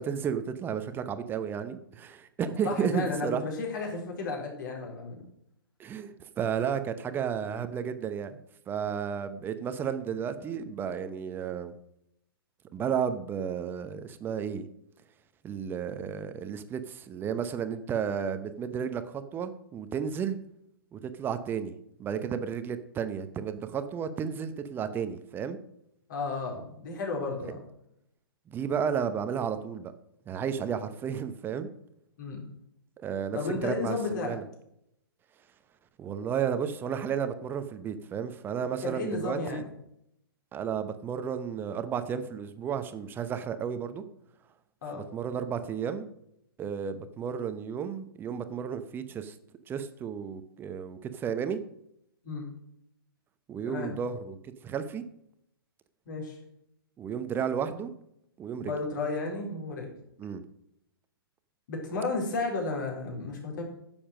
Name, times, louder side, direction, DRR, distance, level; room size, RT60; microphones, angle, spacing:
voice 1, 0.0-3.5 5.8-11.7 12.7-14.6 15.4-20.4 20.9-21.7 22.0-25.6 27.4-27.5 28.5-29.9 30.3-31.7 33.0-34.4 36.0-39.6 40.5-44.0 44.9-46.0 46.6-49.4 49.7-51.6 53.5-55.0 57.0-57.9 58.4-58.7 60.2-60.4, right 7 dB, 15° right, 11 dB, 0.8 m, -33 dB
voice 2, 2.6-5.2 26.1-27.6 32.2-32.4 33.3-34.4 38.8-39.7 44.8-45.0 52.2-52.5 53.6-53.9 56.1-56.4 58.6-59.9 61.7-63.6, left 3 dB, 55° left, 1 dB, 3.9 m, -33 dB
10.0 x 7.1 x 6.3 m, 0.77 s
figure-of-eight pair, 125°, 13 cm